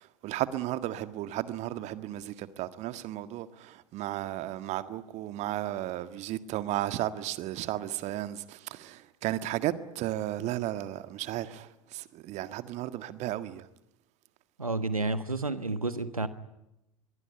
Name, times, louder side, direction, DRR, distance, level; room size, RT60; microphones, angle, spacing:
voice 1, 0.0-13.7, right 14 dB, 40° right, 1.7 m, -34 dB
voice 2, 14.6-16.3, right 3 dB, 85° right, 1.4 m, -30 dB
25.0 x 23.0 x 9.9 m
figure-of-eight pair, 80°, 18 cm